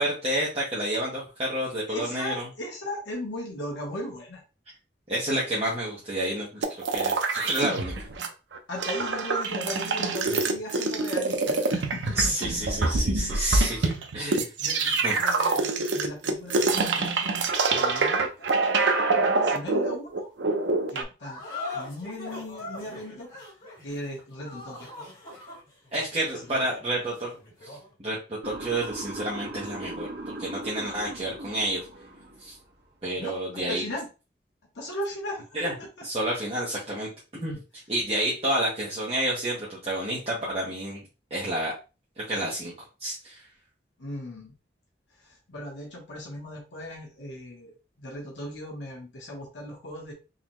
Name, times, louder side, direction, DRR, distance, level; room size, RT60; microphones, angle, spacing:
voice 1, 0.0-2.4 5.1-6.6 6.9-7.9 12.1-14.5 14.8-15.2 25.9-27.3 27.6-30.1 30.4-31.8 32.4-32.5 33.0-33.8 35.5-35.7 36.0-37.1 37.4-37.6 37.9-41.0 41.3-41.7 42.2-42.7 43.0-43.4, right 1 dB, 35° right, -6 dB, 1.1 m, -29 dB
voice 2, 1.9-4.4 8.7-12.7 13.5-13.7 14.6-17.4 17.7-18.6 19.4-20.3 20.9-21.4 21.7-23.3 23.8-24.9 25.9-26.1 26.4-26.7 33.1-34.1 34.7-36.0 44.0-44.5 45.2-50.1, left 1 dB, 85° left, -1 dB, 1.2 m, -38 dB
sound 1, 6.6-8.3 8.5-21.0, right 3 dB, 85° right, 0.6 m, -25 dB
sound 2, 21.2-27.9, left 2 dB, 50° left, 2.2 m, -41 dB
Motor vehicle (road) / Siren, 28.4-32.6, right 2 dB, 65° right, 1.5 m, -39 dB
4.0 x 2.9 x 3.0 m, 0.31 s
head